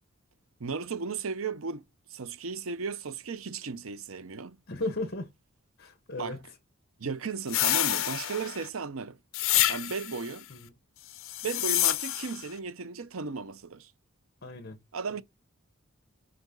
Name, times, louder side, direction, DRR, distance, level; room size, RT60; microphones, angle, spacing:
voice 1, 0.6-1.8 2.1-4.6 6.2-6.4 7.0-9.2 9.7-10.5 11.4-13.9 14.9-15.2, right 4 dB, 80° right, 0.7 m, -35 dB
voice 2, 4.7-5.3 5.8-6.6 10.5-10.7 14.4-14.8, left 2 dB, 50° left, 1.2 m, -36 dB
sound 1, 7.5-8.7 9.3-10.2 11.2-12.4, left 14 dB, 70° left, 0.6 m, -28 dB
5.1 x 5.0 x 3.9 m
head